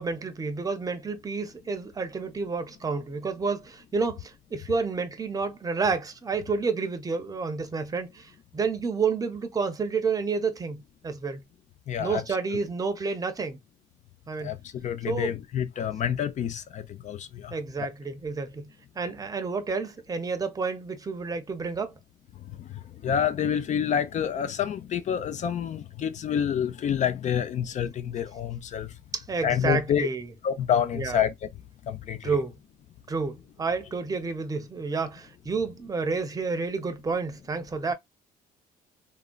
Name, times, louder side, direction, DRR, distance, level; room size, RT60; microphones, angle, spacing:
voice 1, 0.0-11.4 12.0-13.6 14.3-14.5 15.1-15.4 17.5-18.7 19.0-21.9 29.1-30.3 30.9-31.2 32.2-32.5 33.1-37.9, right 4 dB, 20° right, 0.7 m, -30 dB
voice 2, 11.9-12.2 14.4-17.6 22.4-28.9 29.4-30.1 30.4-31.5 31.9-32.4, left 8 dB, 45° left, 0.5 m, -28 dB
3.6 x 2.1 x 2.2 m
cardioid pair, 110°, 17 cm